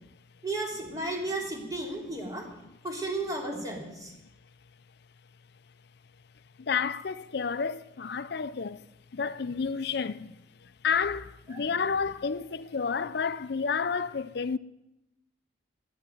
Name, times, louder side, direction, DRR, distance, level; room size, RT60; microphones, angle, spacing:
voice 1, 0.4-2.4 2.8-4.1 11.5-11.6, right 2 dB, 20° right, 3.1 m, -33 dB
voice 2, 6.6-8.8 9.1-10.4 10.8-14.6, left 5 dB, 55° left, 0.5 m, -30 dB
11.0 x 10.0 x 9.3 m
head